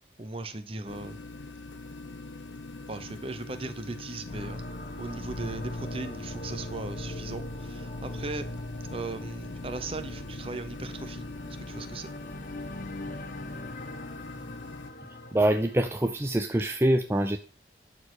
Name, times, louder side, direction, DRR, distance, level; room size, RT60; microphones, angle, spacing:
voice 1, 0.2-1.2 2.9-4.6 5.0-8.5 8.9-12.1, right 2 dB, 30° right, 0.9 m, -38 dB
sound 1, 0.9-14.9, left 3 dB, 85° left, 0.7 m, -43 dB
sound 2, 4.2-16.2, left 1 dB, 45° left, 1.1 m, -40 dB
voice 2, 15.3-17.4, right 1 dB, 15° right, 0.5 m, -25 dB
12.0 x 4.5 x 6.4 m
head